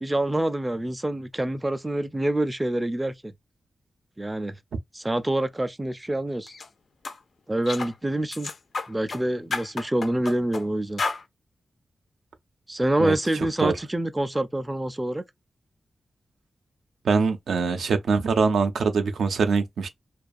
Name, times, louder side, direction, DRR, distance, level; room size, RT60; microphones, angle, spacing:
voice 1, 0.0-3.3 4.2-4.6 4.9-6.5 7.5-8.5 8.9-11.0 12.7-15.2, right 1 dB, 15° right, 0.3 m, -26 dB
sound 1, 6.5-6.7 7.0-7.2 7.7-7.9 8.3-9.2 9.5-10.6 11.0-11.2, left 4 dB, 60° left, 0.4 m, -31 dB
voice 2, 17.0-19.9, right 5 dB, 85° right, 0.4 m, -23 dB
2.3 x 2.3 x 2.5 m
wide cardioid pair, 85°, 0 cm